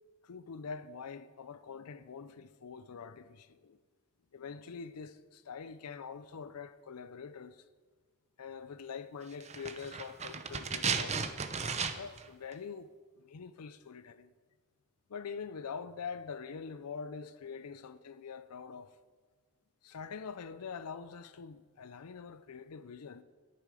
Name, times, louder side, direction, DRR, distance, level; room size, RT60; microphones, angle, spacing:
voice 1, 0.2-3.8 4.3-7.7 8.4-11.2 12.0-14.3 15.1-18.9 19.8-23.2, left 5 dB, 85° left, 0.5 m, -44 dB
sound 1, 9.4-12.3 12.5-12.6, right 5 dB, 30° right, 0.7 m, -35 dB
12.5 x 10.5 x 4.9 m
head